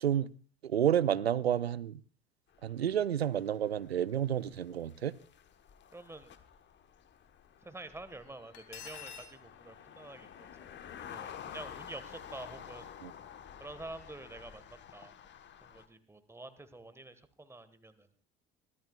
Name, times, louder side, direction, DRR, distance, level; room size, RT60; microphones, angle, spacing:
voice 1, 0.6-2.0 2.6-5.1 13.0-13.1, right 10 dB, 80° right, 0.5 m, -30 dB
sound 1, 2.5-15.9, left 8 dB, 35° left, 1.3 m, -51 dB
voice 2, 5.9-6.3 7.6-10.3 11.0-12.9 13.6-15.1 15.6-18.1, right 2 dB, 10° right, 1.6 m, -48 dB
Cutlery silverware, 8.5-9.3, left 8 dB, 60° left, 2.4 m, -46 dB
23.5 x 14.5 x 2.4 m
figure-of-eight pair, 60°, 31 cm